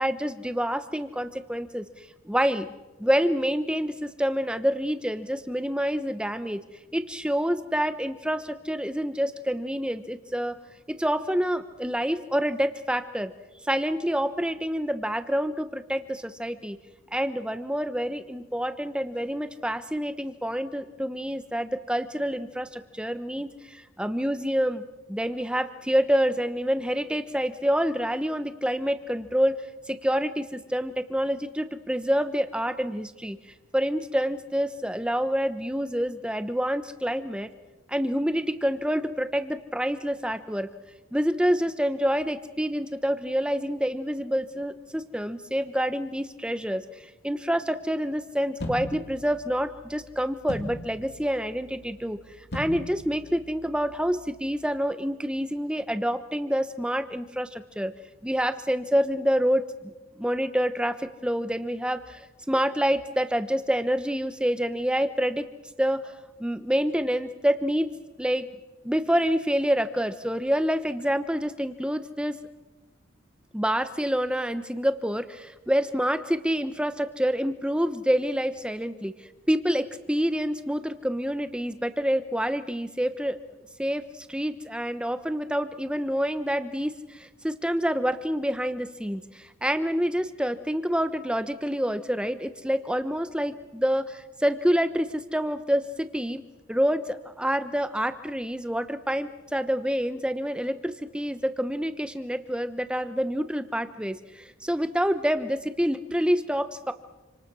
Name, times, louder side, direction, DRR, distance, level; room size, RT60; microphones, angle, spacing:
voice 1, 0.0-2.7 3.0-6.6 6.9-10.6 10.9-13.3 13.7-16.8 17.1-24.8 25.1-29.6 29.9-33.4 33.7-37.5 37.9-40.7 41.1-57.9 58.2-65.5 65.8-66.1 66.4-67.9 68.2-68.5 68.8-72.4 73.5-83.4 83.8-96.4 96.7-106.9, equal, 5° right, 10 dB, 1.0 m, -27 dB
sound 1, 48.6-54.7, equal, 50° left, 2.9 m, -40 dB
28.0 x 26.5 x 6.3 m, 1.1 s
head